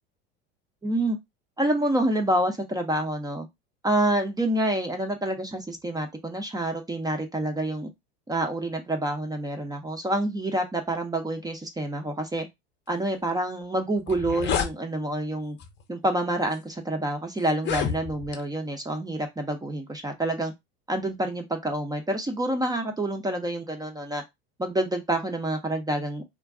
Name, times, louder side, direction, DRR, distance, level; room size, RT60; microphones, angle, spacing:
voice 1, 0.8-1.2 1.6-3.5 3.8-7.9 8.3-12.5 12.9-15.6 15.9-20.5 20.9-24.2 24.6-26.2, right 1 dB, 10° right, 0.5 m, -27 dB
sound 1, 13.6-13.7 14.0-14.7 15.6-15.8 16.5-16.6 17.5-18.4, left 8 dB, 35° left, 0.6 m, -29 dB
2.4 x 2.2 x 3.5 m
hypercardioid pair, 80°, 32 cm